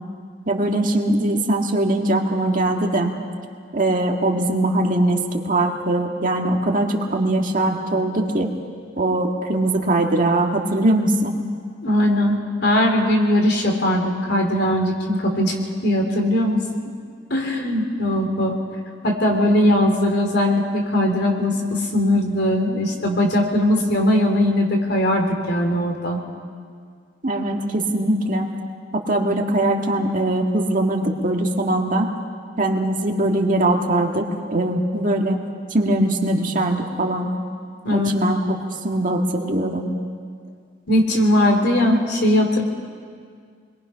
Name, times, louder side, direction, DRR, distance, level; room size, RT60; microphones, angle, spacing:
voice 1, 0.5-3.1 3.7-8.5 9.0-11.3 27.2-28.5 28.9-32.1 32.6-35.4 35.7-37.3 37.9-38.6 38.8-39.9, right 1 dB, 45° right, 2 dB, 1.8 m, -21 dB
voice 2, 11.8-15.5 15.8-16.6 17.3-18.6 19.0-26.2 37.8-38.1 40.9-42.6, left 1 dB, 60° left, 2 dB, 3.3 m, -19 dB
27.5 x 22.0 x 5.7 m, 2.1 s
head